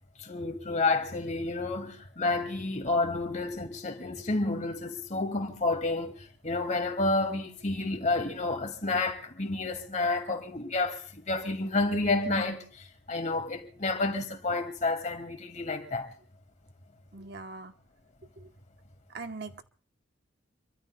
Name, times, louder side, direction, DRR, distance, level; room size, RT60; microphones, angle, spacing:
voice 1, 0.2-16.1, left 2 dB, 40° left, 2.1 m, -30 dB
voice 2, 17.1-17.7 19.1-19.6, right 3 dB, 60° right, 1.0 m, -40 dB
27.5 x 23.0 x 2.2 m
head